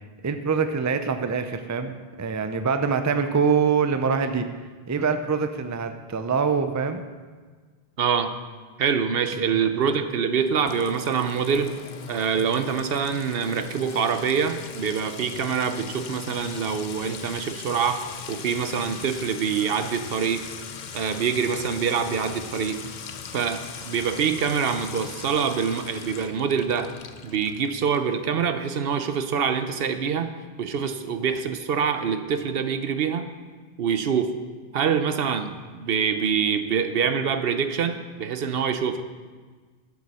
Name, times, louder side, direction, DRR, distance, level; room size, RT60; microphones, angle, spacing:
voice 1, 0.2-4.5 4.9-7.0 9.5-9.6, right 5 dB, 25° right, 8 dB, 0.4 m, -24 dB
voice 2, 8.0-8.3 8.8-11.8 12.1-20.5 20.9-22.8 23.3-26.9 27.2-30.3 30.6-33.3 33.8-34.3 34.7-35.5 35.8-39.0, right 6 dB, 70° right, 9 dB, 0.9 m, -25 dB
Sink (filling or washing) / Trickle dribble / Fill (with liquid), 10.6-28.1, left 6 dB, 55° left, 0.7 m, -39 dB
13.0 x 7.9 x 4.2 m, 1.5 s
omnidirectional pair, 1.0 m